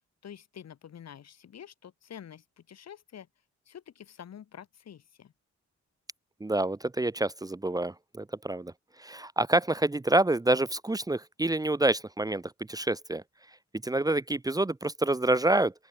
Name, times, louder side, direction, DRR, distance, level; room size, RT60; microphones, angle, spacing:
voice 1, 0.2-3.3 3.7-5.3, left 9 dB, 65° left, 3.3 m, -47 dB
voice 2, 6.4-8.7 9.0-12.4 12.7-13.2 13.8-15.7, right 2 dB, 15° right, 1.2 m, -27 dB
open air
wide cardioid pair, 160°, 29 cm